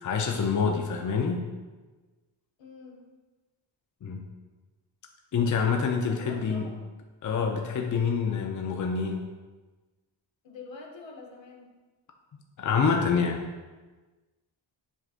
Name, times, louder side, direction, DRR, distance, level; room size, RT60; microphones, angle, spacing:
voice 1, 0.0-1.5 4.0-4.3 5.3-6.7 7.2-9.3 12.6-13.4, left 5 dB, 45° left, 3 dB, 0.6 m, -26 dB
voice 2, 2.6-3.0 6.1-6.8 10.4-11.7, left 3 dB, 80° left, 0 dB, 1.1 m, -46 dB
7.9 x 4.9 x 2.5 m, 1.3 s
cardioid pair, 95°, 45 cm